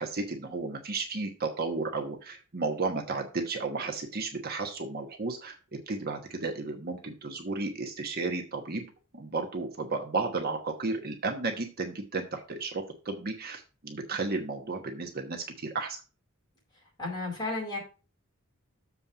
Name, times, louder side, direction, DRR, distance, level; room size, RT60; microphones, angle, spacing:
voice 1, 0.0-5.6 5.9-8.8 9.1-16.0, right 3 dB, 45° right, 3 dB, 1.2 m, -33 dB
voice 2, 17.0-17.8, left 2 dB, 20° left, -3 dB, 4.5 m, -33 dB
7.2 x 4.4 x 6.7 m, 0.34 s
head